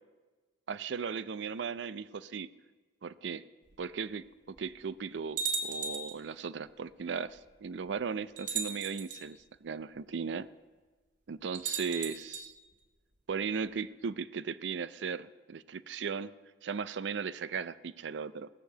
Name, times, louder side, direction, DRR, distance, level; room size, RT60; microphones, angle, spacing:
voice 1, 0.7-2.5 3.0-3.4 3.8-10.5 11.3-12.5 13.3-16.3 16.6-18.5, right 6 dB, 80° right, 17 dB, 0.5 m, -37 dB
sound 1, 3.7-3.8 4.6-4.7 5.4-6.2 7.4-7.5 8.4-9.2 11.5-12.5, right 5 dB, 45° right, 1.5 m, -36 dB
16.5 x 6.7 x 7.7 m, 1.3 s
head